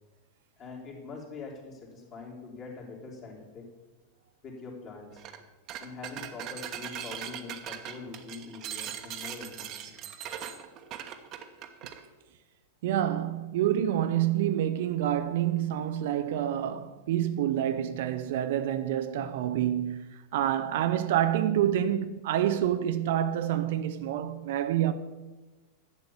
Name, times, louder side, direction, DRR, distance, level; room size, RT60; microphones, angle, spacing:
voice 1, 0.6-3.7 4.4-5.2 5.8-10.0, left 4 dB, 35° left, 3.3 m, -43 dB
sound 1, 5.2-5.4 5.7-12.0, right 10 dB, 35° right, 1.1 m, -40 dB
voice 2, 12.8-24.9, right 11 dB, 55° right, 0.6 m, -27 dB
11.5 x 8.1 x 6.9 m
figure-of-eight pair, 90°, 0 cm